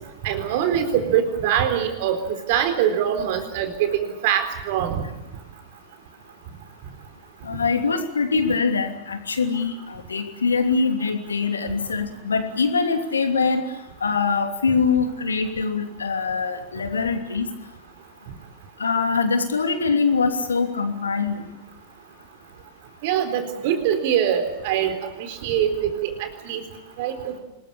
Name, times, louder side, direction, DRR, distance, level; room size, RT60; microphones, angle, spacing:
voice 1, 0.2-5.0 23.0-26.6 27.0-27.3, right 9 dB, 50° right, 7 dB, 4.0 m, -23 dB
voice 2, 7.4-13.6 14.0-17.5 18.8-21.5, left 4 dB, 75° left, 6 dB, 2.9 m, -23 dB
26.0 x 21.0 x 8.7 m, 0.98 s
figure-of-eight pair, 90°, 0 cm